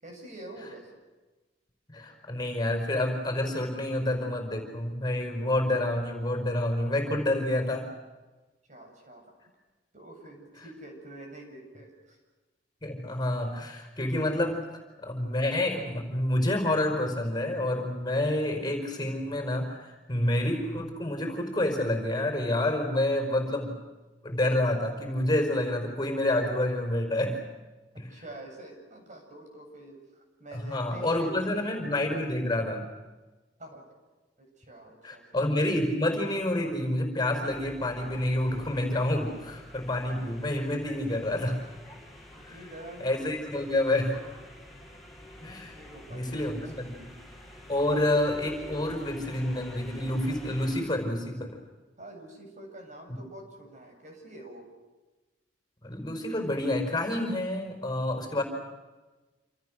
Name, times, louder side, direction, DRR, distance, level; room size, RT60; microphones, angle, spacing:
voice 1, 0.0-0.9 8.7-9.3 9.9-12.2 27.9-31.7 33.6-33.8 34.4-35.4 42.3-44.2 44.7-44.8 45.7-46.8 47.1-47.2 47.7-47.8 52.0-54.7, right 1 dB, 45° right, 3 dB, 7.7 m, -47 dB
voice 2, 1.9-7.9 10.6-10.7 12.8-14.6 15.0-23.8 24.2-27.4 28.0-28.2 30.5-32.9 35.0-41.7 42.4-42.6 43.0-44.1 45.4-45.8 46.1-47.1 47.7-51.5 53.1-53.2 55.8-58.4, left 1 dB, 25° left, 5 dB, 5.0 m, -28 dB
sound 1, 37.5-50.8, left 1 dB, ahead, 6.7 m, -48 dB
28.0 x 28.0 x 6.6 m, 1.2 s
head